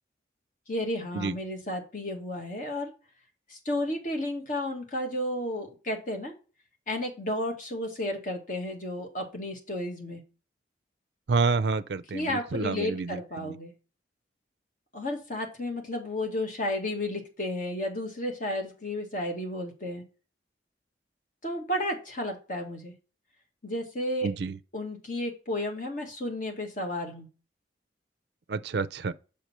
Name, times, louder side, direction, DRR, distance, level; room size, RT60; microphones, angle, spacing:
voice 1, 0.7-2.9 3.5-6.3 6.9-10.2 12.1-13.7 14.9-20.0 21.4-22.9 23.6-24.3 24.7-27.3, left 1 dB, 45° left, 1.9 m, -32 dB
voice 2, 11.3-13.6 24.2-24.6 28.5-29.1, right 4 dB, 65° right, 0.5 m, -29 dB
6.6 x 5.2 x 4.4 m
head